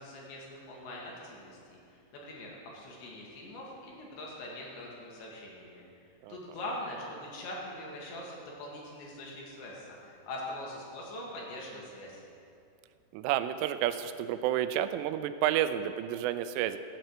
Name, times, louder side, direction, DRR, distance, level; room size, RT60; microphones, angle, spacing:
voice 1, 0.0-5.8 6.3-12.2, left 1 dB, 70° left, -3 dB, 4.2 m, -43 dB
voice 2, 13.1-16.8, right 11 dB, 85° right, 11 dB, 3.1 m, -30 dB
16.0 x 6.7 x 7.4 m, 2.6 s
omnidirectional pair, 5.6 m